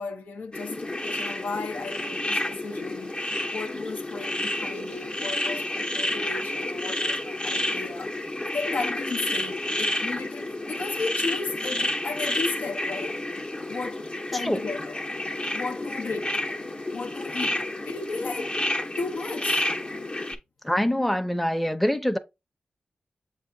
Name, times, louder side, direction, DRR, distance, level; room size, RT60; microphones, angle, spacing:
voice 1, 0.0-3.2 3.5-8.2 8.5-13.2 13.7-14.0 14.3-15.0 15.5-16.4 16.9-18.6 19.0-19.8, left 4 dB, 85° left, 0.6 m, -35 dB
sound 1, 0.5-20.3, left 1 dB, 35° left, 0.7 m, -30 dB
voice 2, 20.6-22.2, equal, ahead, 0.6 m, -24 dB
7.3 x 2.5 x 2.6 m
cardioid pair, 65°, 3 cm